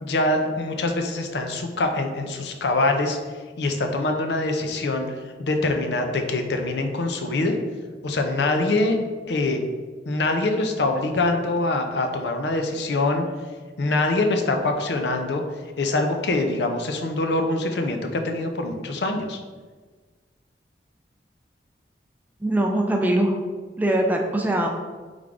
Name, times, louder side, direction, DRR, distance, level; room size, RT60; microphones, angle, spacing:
voice 1, 0.0-3.2 3.6-5.1 5.4-7.5 8.0-9.0 9.3-9.6 10.1-13.2 13.8-15.4 15.8-19.4, left 2 dB, 75° left, 5 dB, 0.5 m, -24 dB
voice 2, 22.4-23.4 23.8-24.7, right 1 dB, 10° right, 2 dB, 0.3 m, -22 dB
3.6 x 3.3 x 3.6 m, 1.4 s
head